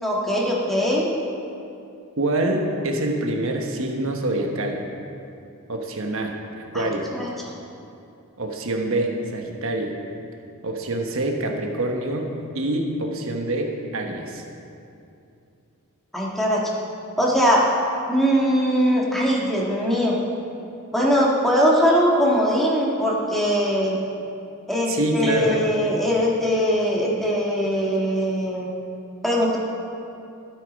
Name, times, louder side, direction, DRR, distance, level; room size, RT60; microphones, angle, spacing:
voice 1, 0.0-1.1 6.7-6.9 7.1-7.3 16.1-16.6 17.2-17.6 18.1-20.2 20.9-24.0 24.7-28.7 29.2-29.6, equal, ahead, -4 dB, 1.6 m, -21 dB
voice 2, 2.2-4.8 5.7-6.3 6.7-7.1 8.4-9.9 10.6-14.4 24.9-25.6, right 1 dB, 60° right, 2 dB, 1.1 m, -25 dB
12.5 x 8.3 x 5.2 m, 2.7 s
head